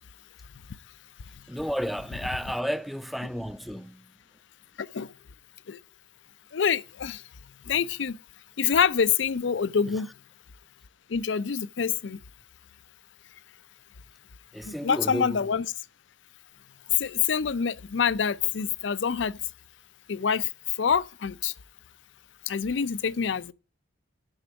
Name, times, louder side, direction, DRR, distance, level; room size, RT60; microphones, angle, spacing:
voice 1, 1.5-4.1 14.5-15.4, equal, ahead, 0.4 m, -32 dB
voice 2, 4.8-5.1 5.7-5.8 6.5-7.2 7.7-8.2 8.6-10.1 11.1-12.2 14.6-15.7 17.0-19.4 20.1-20.5 20.8-21.5 22.5-23.5, left 6 dB, 70° left, 0.5 m, -26 dB
7.9 x 6.0 x 6.8 m
head